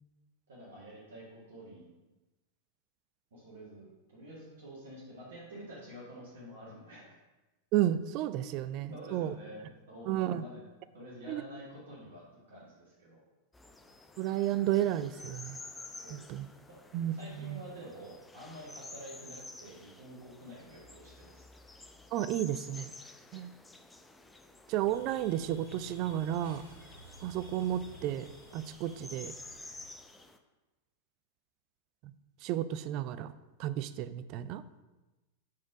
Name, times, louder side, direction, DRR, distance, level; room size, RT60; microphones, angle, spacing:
voice 1, 0.5-1.9 3.3-7.2 8.5-8.6 8.9-10.7 10.9-13.2 16.0-16.3 16.7-16.8 17.1-21.5, right 1 dB, 60° right, -7 dB, 1.9 m, -49 dB
voice 2, 7.7-9.3 10.1-10.4 11.3-11.4 14.2-15.6 16.1-16.5 16.9-17.6 22.1-22.9 23.3-23.5 24.7-26.6 27.2-28.3 28.5-29.3 32.4-33.3 33.6-34.6, right 12 dB, 40° right, 14 dB, 0.3 m, -32 dB
sound 1, 13.5-30.4, left 2 dB, 10° left, 0.5 m, -51 dB
sound 2, 24.7-29.9, right 2 dB, 90° left, 1.4 m, -54 dB
6.0 x 4.3 x 5.8 m, 1.1 s
figure-of-eight pair, 90°, 0 cm